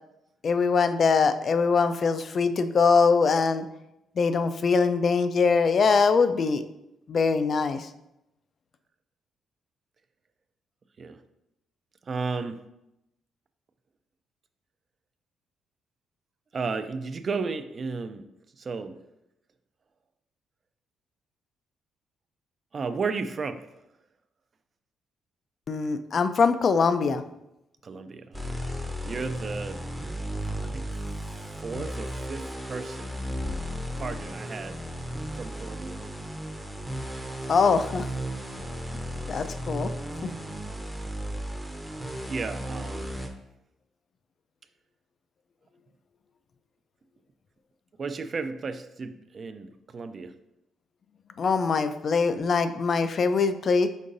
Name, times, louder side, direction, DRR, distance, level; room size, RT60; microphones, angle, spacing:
voice 1, 0.4-3.7 4.2-6.6 7.1-7.9 25.7-27.2 37.5-38.1 39.3-39.9 40.2-40.3 51.4-53.9, left 5 dB, 50° left, 10 dB, 0.3 m, -23 dB
voice 2, 12.0-12.6 16.5-18.3 18.6-19.0 22.7-23.7 27.8-28.6 29.0-29.8 30.6-30.9 31.2-33.3 34.0-34.8 35.3-36.0 42.3-43.3 48.0-50.3, right 4 dB, 40° right, 9 dB, 0.3 m, -34 dB
sound 1, 28.3-43.3, equal, ahead, 0.6 m, -35 dB
5.3 x 3.7 x 2.5 m, 0.87 s
cardioid pair, 90°, 0 cm